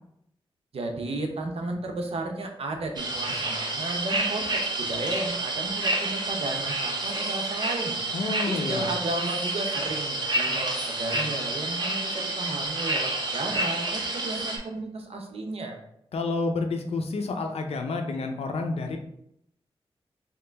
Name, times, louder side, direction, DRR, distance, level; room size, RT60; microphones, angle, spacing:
voice 1, 0.7-8.0 8.5-15.8, right 2 dB, 75° right, 3 dB, 0.7 m, -33 dB
sound 1, 3.0-14.6, right 2 dB, 45° right, 0.8 m, -29 dB
voice 2, 8.1-8.9 16.1-19.0, left 3 dB, 90° left, 5 dB, 0.5 m, -29 dB
3.7 x 2.9 x 3.4 m, 0.74 s
wide cardioid pair, 90°, 10 cm